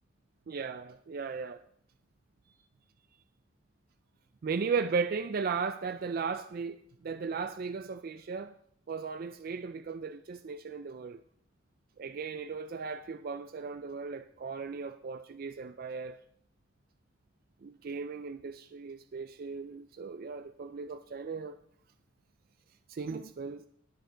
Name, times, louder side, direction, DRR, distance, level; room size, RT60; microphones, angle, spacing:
voice 1, 0.5-1.6 4.4-8.5 8.9-11.2 12.0-16.2 17.6-21.6 22.9-23.6, right 5 dB, 50° right, 0.4 m, -36 dB
18.0 x 6.5 x 3.9 m
head